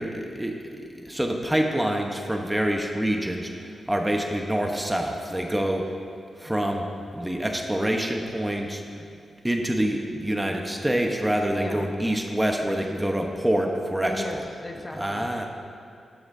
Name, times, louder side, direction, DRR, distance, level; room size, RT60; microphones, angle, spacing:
voice 1, 0.0-5.9 6.4-6.9 7.1-8.8 9.4-14.2 14.9-15.5, right 1 dB, 10° right, 2 dB, 1.1 m, -26 dB
voice 2, 14.1-15.5, left 1 dB, 30° left, 2 dB, 1.3 m, -36 dB
12.0 x 11.5 x 2.8 m, 2.4 s
supercardioid pair, 50°, 0 cm